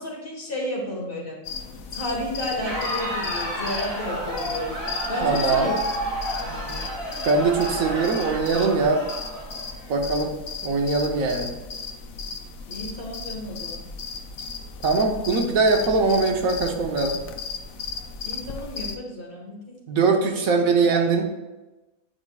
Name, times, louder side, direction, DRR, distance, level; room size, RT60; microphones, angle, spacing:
voice 1, 0.0-1.4 1.9-4.8 5.1-5.7 6.4-6.9 12.7-13.8 18.3-19.8, left 1 dB, 40° left, -2 dB, 1.8 m, -32 dB
sound 1, 1.4-19.0, left 4 dB, 75° left, 1.1 m, -35 dB
Crowd, 2.4-10.0, right 1 dB, 45° right, 2.0 m, -31 dB
voice 2, 5.2-5.8 7.2-9.0 9.9-10.3 10.6-11.5 14.8-17.2 19.9-21.3, right 4 dB, 75° right, 2 dB, 1.3 m, -21 dB
9.4 x 5.4 x 2.3 m, 1.1 s
omnidirectional pair, 1.5 m